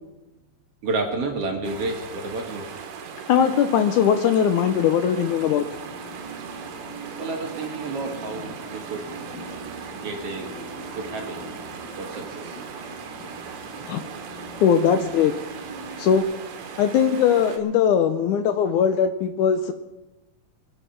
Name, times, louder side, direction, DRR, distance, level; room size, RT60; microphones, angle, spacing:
voice 1, 0.8-2.7 7.2-9.1 9.9-10.5 10.9-11.4 12.0-12.6, right 3 dB, 50° right, 2 dB, 2.5 m, -30 dB
sound 1, 1.6-17.6, right 7 dB, 70° right, 2.9 m, -39 dB
voice 2, 3.3-5.6 13.9-14.0 14.6-15.4 16.0-16.3 16.8-19.7, left 8 dB, 75° left, 9 dB, 2.0 m, -20 dB
sound 2, 4.5-16.2, right 2 dB, 25° right, 4.1 m, -42 dB
24.5 x 8.4 x 5.8 m, 1.0 s
omnidirectional pair, 4.0 m